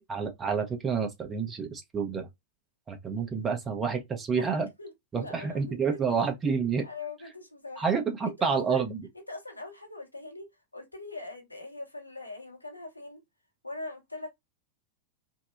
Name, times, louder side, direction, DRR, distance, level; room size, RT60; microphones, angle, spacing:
voice 1, 0.1-2.3 2.9-4.7 5.1-6.9 7.8-9.1, right 6 dB, 20° right, 0.7 m, -29 dB
voice 2, 4.8-6.0 6.8-7.9 8.4-8.8 9.3-13.2 13.6-14.3, left 3 dB, 85° left, 0.8 m, -42 dB
2.7 x 2.0 x 2.4 m
figure-of-eight pair, 90°, 0 cm